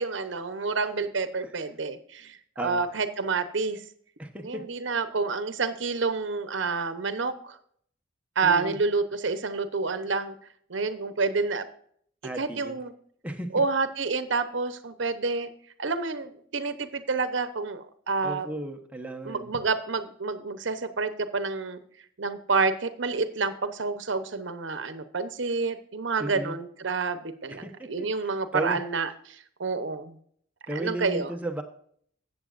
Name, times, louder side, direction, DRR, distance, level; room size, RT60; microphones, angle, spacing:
voice 1, 0.0-3.8 4.4-7.6 8.4-10.3 10.7-11.7 12.4-12.9 13.5-15.5 15.8-18.5 19.2-21.8 22.2-30.2 30.7-31.3, right 4 dB, 70° right, 11 dB, 0.9 m, -29 dB
voice 2, 4.2-4.6 8.4-8.8 12.2-12.8 13.2-13.5 18.2-19.5 26.2-26.6 27.5-28.1 28.5-28.8 30.7-31.6, right 1 dB, 5° right, 3 dB, 1.0 m, -34 dB
13.5 x 8.4 x 2.5 m, 0.62 s
head